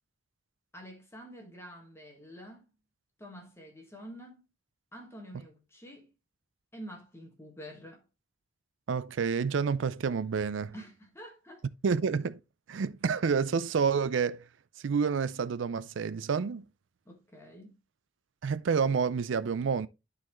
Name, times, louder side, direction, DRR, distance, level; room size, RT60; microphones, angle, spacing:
voice 1, 0.7-2.7 3.2-4.4 4.9-6.1 6.7-8.0 10.7-11.6 17.0-17.8, equal, 15° left, 1.5 m, -48 dB
voice 2, 8.9-10.7 11.8-12.4 12.7-14.4 14.8-16.6 18.4-19.9, right 6 dB, 75° right, 0.4 m, -29 dB
12.0 x 4.1 x 3.0 m
head